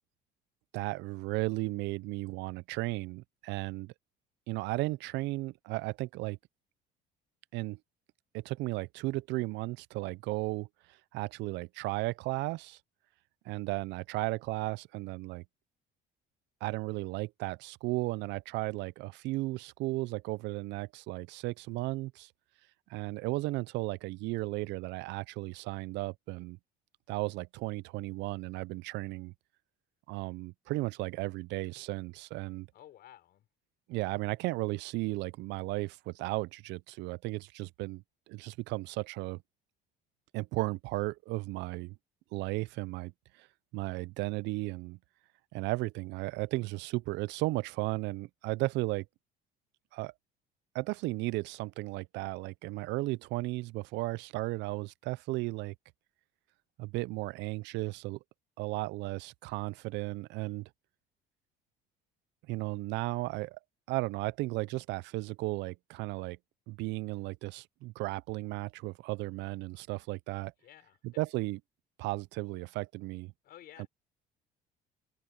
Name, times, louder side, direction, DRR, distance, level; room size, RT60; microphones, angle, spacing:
voice 1, 0.7-3.9 4.5-6.4 7.5-7.8 8.3-12.8 13.5-15.4 16.6-22.3 22.9-26.6 27.1-29.3 30.1-32.7 33.9-39.4 40.3-42.0 42.3-43.1 43.4-43.5 43.7-45.0 45.5-49.1 49.9-50.1 50.7-55.7 56.8-58.2 58.6-60.7 62.5-63.6 63.9-66.4 66.7-70.5 71.0-71.6 72.0-73.3 73.8-73.9, right 21 dB, 75° right, 0.5 m, -35 dB
voice 2, 32.7-33.4 70.6-71.0 73.4-73.9, left 12 dB, 55° left, 6.2 m, -53 dB
cardioid pair, 140°, 18 cm